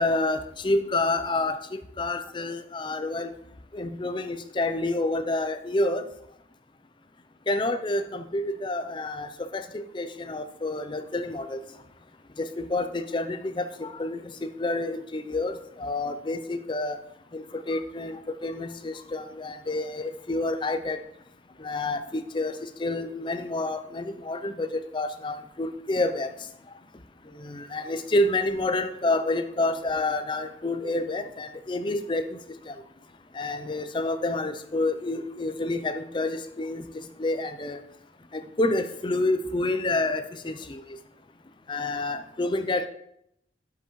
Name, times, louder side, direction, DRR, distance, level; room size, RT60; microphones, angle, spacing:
voice 1, 0.0-3.3 3.7-6.0 7.5-11.6 12.4-14.2 14.6-17.0 17.3-21.0 21.6-22.5 22.8-26.3 27.4-32.2 32.7-32.8 33.3-36.9 37.2-37.8 38.3-40.8 41.7-42.9, left 2 dB, 25° left, 9 dB, 0.5 m, -28 dB
12.0 x 5.8 x 3.1 m, 0.78 s
head